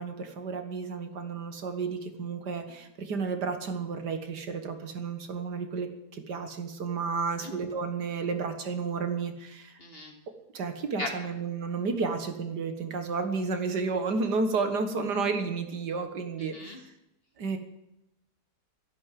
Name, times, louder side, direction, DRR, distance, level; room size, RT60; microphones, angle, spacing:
voice 1, 0.0-9.8 10.5-16.5 17.4-17.6, right 4 dB, 70° right, 7 dB, 2.0 m, -32 dB
voice 2, 9.8-10.1 11.0-11.1 16.4-16.8, left 2 dB, 35° left, 3 dB, 2.4 m, -38 dB
13.0 x 11.0 x 7.5 m, 0.88 s
omnidirectional pair, 1.8 m